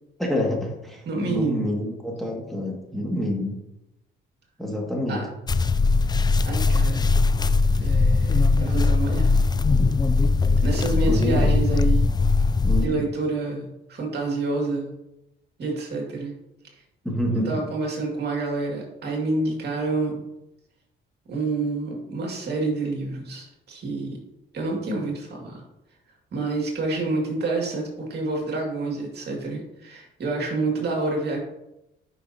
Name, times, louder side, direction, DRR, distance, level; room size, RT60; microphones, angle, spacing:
voice 1, 0.2-3.5 4.6-5.2 11.1-11.5 12.6-13.1 17.0-17.5, equal, ahead, -3 dB, 2.0 m, -27 dB
voice 2, 1.0-1.7 5.1-5.2 6.4-7.1 7.8-9.5 10.6-12.1 12.8-14.9 15.6-16.3 17.5-20.3 21.3-24.2 24.5-25.6 26.3-31.4, right 3 dB, 55° right, -1 dB, 2.3 m, -28 dB
sound 1, 5.5-12.9, left 3 dB, 20° left, 0.4 m, -20 dB
9.7 x 5.6 x 2.8 m, 0.91 s
cardioid pair, 90°, 20 cm